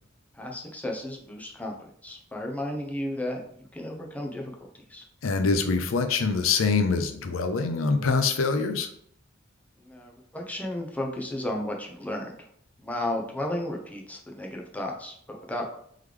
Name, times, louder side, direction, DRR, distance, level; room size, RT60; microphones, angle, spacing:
voice 1, 0.3-1.7 2.0-4.5 4.9-5.0 9.8-12.3 12.8-15.8, left 1 dB, 10° left, 1 dB, 0.6 m, -33 dB
voice 2, 5.2-8.9, left 4 dB, 85° left, 7 dB, 0.5 m, -24 dB
3.7 x 3.1 x 3.3 m, 0.66 s
head